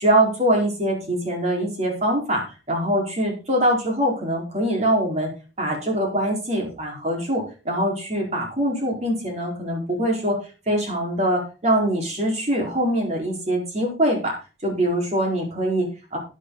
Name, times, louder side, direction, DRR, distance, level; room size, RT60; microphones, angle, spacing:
voice 1, 0.0-5.3 5.6-10.4 10.7-14.3 14.6-16.2, right 1 dB, 40° right, 0 dB, 4.4 m, -23 dB
11.5 x 10.5 x 4.0 m, 0.33 s
head